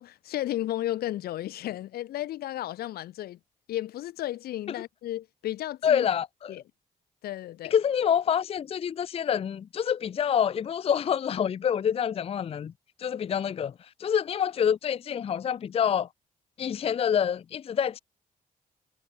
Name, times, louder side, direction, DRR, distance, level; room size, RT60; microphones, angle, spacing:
voice 1, 0.0-3.4 3.7-6.1 6.5-6.6 7.2-7.7, left 14 dB, 85° left, 1.8 m, -33 dB
voice 2, 5.8-6.6 7.7-12.7 13.0-13.7 14.0-16.1 16.6-18.0, left 8 dB, 40° left, 0.4 m, -27 dB
cardioid pair, 80°, 16 cm